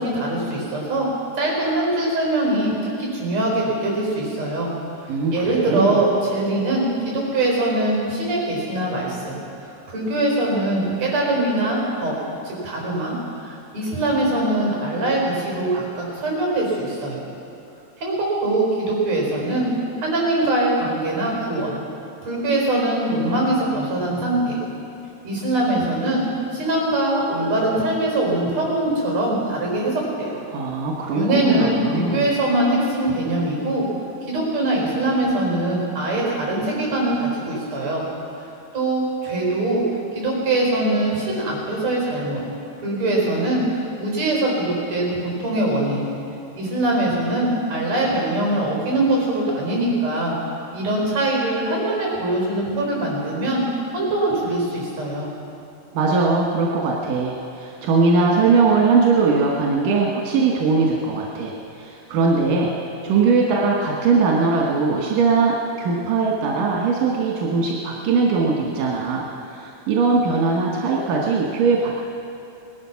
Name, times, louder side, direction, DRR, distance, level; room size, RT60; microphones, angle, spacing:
voice 1, 0.0-4.7 5.3-9.3 9.9-12.1 12.4-13.1 13.7-17.2 18.0-19.7 20.0-21.8 22.2-24.6 25.2-26.2 26.5-30.4 31.1-33.8 34.3-38.0 38.4-38.5 38.7-39.8 40.1-42.4 42.8-46.1 46.5-50.4 50.7-53.6 53.9-55.3, right 1 dB, 55° right, -3 dB, 5.9 m, -22 dB
voice 2, 5.1-6.0 30.5-32.2 55.9-62.7 63.0-71.9, right 4 dB, 90° right, -2 dB, 2.9 m, -20 dB
19.5 x 12.0 x 5.9 m, 2.7 s
omnidirectional pair, 3.7 m